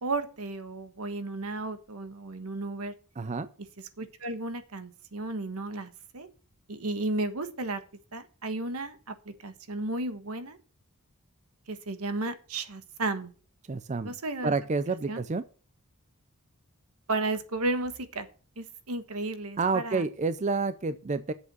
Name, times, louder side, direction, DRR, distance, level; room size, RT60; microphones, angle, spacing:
voice 1, 0.0-2.9 4.0-6.3 6.7-7.8 8.1-10.6 11.7-13.3 14.0-14.5 15.1-15.2 17.1-18.3 18.6-20.0, right 2 dB, 75° right, 10 dB, 1.3 m, -33 dB
voice 2, 3.2-3.5 13.7-14.1 14.4-15.4 19.6-21.3, right 4 dB, 30° right, 13 dB, 0.5 m, -29 dB
8.4 x 7.1 x 6.1 m, 0.40 s
head